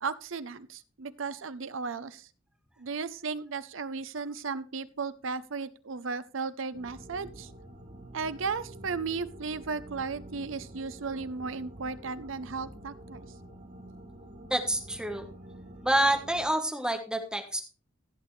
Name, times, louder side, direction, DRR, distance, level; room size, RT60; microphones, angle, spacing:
voice 1, 0.0-2.3 2.8-7.5 8.1-13.3, right 4 dB, 70° right, 14 dB, 0.7 m, -35 dB
sound 1, 6.7-16.5, right 1 dB, 40° right, 3.1 m, -47 dB
voice 2, 14.5-15.2 15.8-17.6, right 1 dB, 5° right, 5 dB, 1.3 m, -27 dB
15.5 x 8.2 x 3.2 m, 0.37 s
head